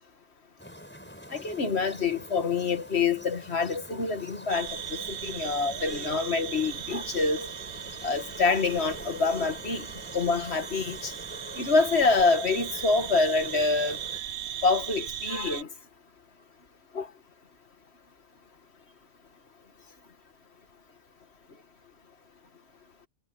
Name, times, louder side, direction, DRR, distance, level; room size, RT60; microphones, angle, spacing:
sound 1, 0.6-14.2, equal, 10° left, 5.4 m, -45 dB
voice 1, 1.3-7.5 8.0-9.9 10.1-11.1 11.6-14.0 14.6-15.7 17.0-17.1, left 4 dB, 60° left, 2.0 m, -26 dB
sound 2, 4.5-15.6, right 10 dB, 65° right, 0.9 m, -38 dB
omnidirectional pair, 1.3 m